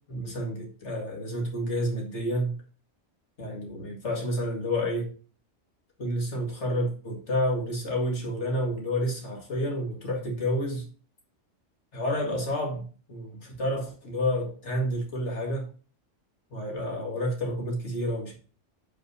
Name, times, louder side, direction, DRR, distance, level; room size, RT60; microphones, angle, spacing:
voice 1, 0.1-2.5 3.4-5.1 6.0-10.8 11.9-12.8 13.1-15.7 16.5-18.3, equal, 70° left, 2.3 m, -29 dB
5.5 x 4.1 x 6.1 m
omnidirectional pair, 1.2 m